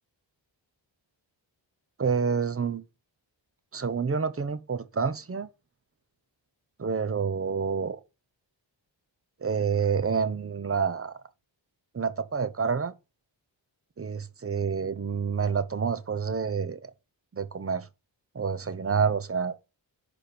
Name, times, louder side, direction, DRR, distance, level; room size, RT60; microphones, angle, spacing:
voice 1, 2.0-2.8 3.7-5.5 6.8-8.0 9.4-11.2 11.9-12.9 14.0-16.9 17.3-17.9 18.3-19.5, right 6 dB, 30° right, 0.7 m, -28 dB
10.5 x 5.1 x 4.3 m
wide cardioid pair, 135°, 45 cm